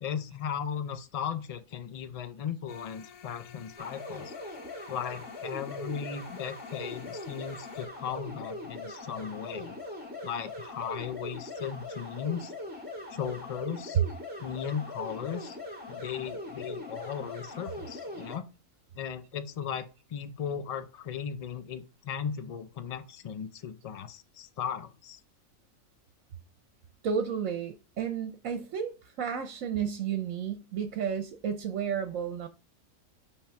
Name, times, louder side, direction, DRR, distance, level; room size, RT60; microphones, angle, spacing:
voice 1, 0.0-4.3 4.9-9.8 10.2-12.5 13.1-14.0 14.4-15.6 15.9-18.5 18.9-25.2, left 8 dB, 55° left, 0.4 m, -37 dB
sound 1, 2.7-7.9, left 7 dB, 80° left, 1.2 m, -52 dB
sound 2, 3.8-18.4, left 2 dB, 5° right, 1.9 m, -41 dB
voice 2, 27.0-32.5, right 7 dB, 75° right, 1.1 m, -31 dB
5.9 x 3.2 x 5.7 m
omnidirectional pair, 1.4 m